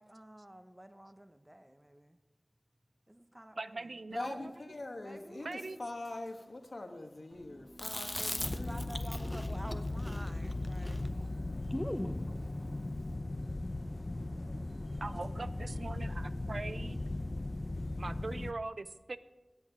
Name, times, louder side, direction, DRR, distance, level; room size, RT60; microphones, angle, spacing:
voice 1, 0.0-2.2 3.1-4.0 5.0-5.5 8.5-11.0, right 1 dB, 20° right, 9 dB, 0.7 m, -50 dB
voice 2, 3.6-4.5 5.4-5.8 15.0-17.0 18.0-19.2, right 3 dB, 75° right, 13 dB, 0.5 m, -41 dB
voice 3, 4.1-8.8, left 2 dB, 80° left, 4 dB, 1.3 m, -43 dB
sound 1, 7.3-12.9, equal, ahead, 1.5 m, -54 dB
Chewing mastication, 7.8-12.2, left 1 dB, 15° left, 0.8 m, -40 dB
sound 2, 8.4-18.5, left 2 dB, 50° left, 0.6 m, -38 dB
17.5 x 8.7 x 3.6 m, 1.2 s
wide cardioid pair, 60°, 0 cm